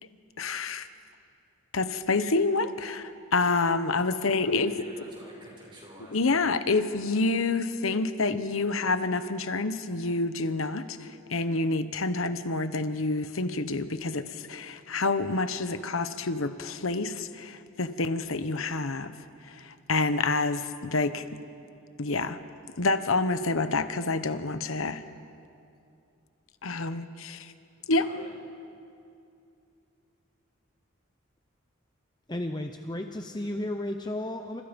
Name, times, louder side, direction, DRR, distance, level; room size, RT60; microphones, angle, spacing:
voice 1, 0.4-0.9 1.7-4.7 6.1-19.1 19.4-21.4 22.0-22.4 22.8-25.0 26.6-27.5 27.9-28.1, left 3 dB, 90° left, 10 dB, 1.1 m, -28 dB
voice 2, 4.4-6.4 28.0-28.3, right 1 dB, 25° right, -2 dB, 6.6 m, -49 dB
voice 3, 32.3-34.6, left 1 dB, 20° left, 5 dB, 0.9 m, -33 dB
28.5 x 27.5 x 5.3 m, 2.5 s
head